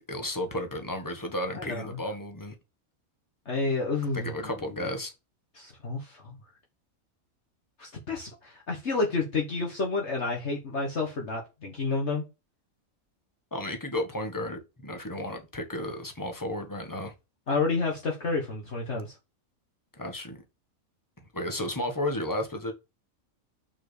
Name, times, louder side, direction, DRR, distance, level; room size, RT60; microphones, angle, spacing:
voice 1, 0.0-2.5 4.1-5.1 13.5-17.1 20.0-20.4 21.3-22.7, left 1 dB, 15° left, 1.5 m, -33 dB
voice 2, 1.5-2.0 3.4-4.3 4.8-4.9 5.5-6.4 7.8-12.2 17.5-19.1, left 3 dB, 55° left, 1.7 m, -30 dB
6.0 x 4.4 x 6.5 m
omnidirectional pair, 1.5 m